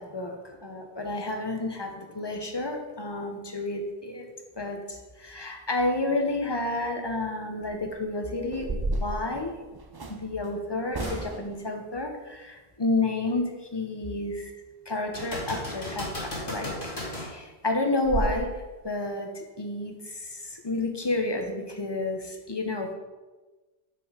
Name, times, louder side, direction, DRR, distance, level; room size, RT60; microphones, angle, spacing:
voice 1, 0.0-4.3 4.6-9.5 10.1-14.5 14.9-18.5 18.8-22.9, left 2 dB, 25° left, 3 dB, 0.9 m, -30 dB
sound 1, 7.6-7.9 8.4-10.2 10.9-11.6 16.1-16.2 16.6-16.8 17.2-17.3 17.6-17.7 18.0-18.4, right 2 dB, 30° right, 0.4 m, -32 dB
sound 2, 11.0-11.3 11.8-11.9 15.1-17.3 21.0-21.1, left 1 dB, 50° left, 2.3 m, -35 dB
6.2 x 5.6 x 4.9 m, 1.2 s
omnidirectional pair, 1.1 m